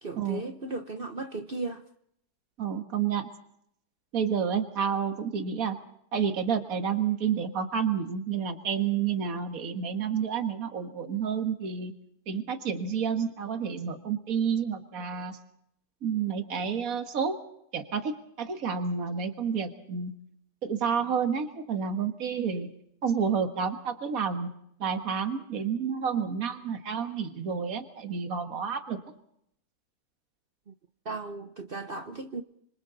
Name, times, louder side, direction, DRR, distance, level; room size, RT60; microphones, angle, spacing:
voice 1, 0.0-1.8 30.7-30.8 31.0-32.4, right 3 dB, 40° right, 0.9 m, -36 dB
voice 2, 2.6-3.3 4.1-5.8 6.1-11.9 12.3-15.4 16.0-17.4 17.7-20.1 20.6-22.7 23.0-24.5 24.8-29.0, right 7 dB, 60° right, 2.1 m, -30 dB
26.5 x 26.0 x 4.1 m
omnidirectional pair, 1.7 m